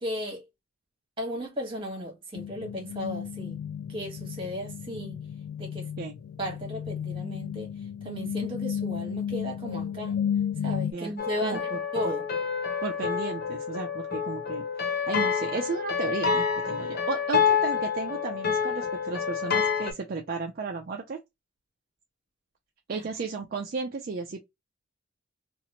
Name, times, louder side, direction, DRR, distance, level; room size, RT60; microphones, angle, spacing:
voice 1, 0.0-0.4 1.2-3.6 3.9-5.2 5.6-5.9 6.4-7.7 8.0-10.1 10.6-12.3 22.9-23.1, equal, 25° right, 1.2 m, -35 dB
sound 1, 2.3-10.9, left 8 dB, 80° left, 0.3 m, -33 dB
sound 2, 11.2-19.9, left 6 dB, 50° left, 0.6 m, -28 dB
voice 2, 11.4-11.8 12.0-12.1 12.8-21.2 22.9-24.4, right 4 dB, 45° right, 0.4 m, -34 dB
2.9 x 2.5 x 2.8 m
head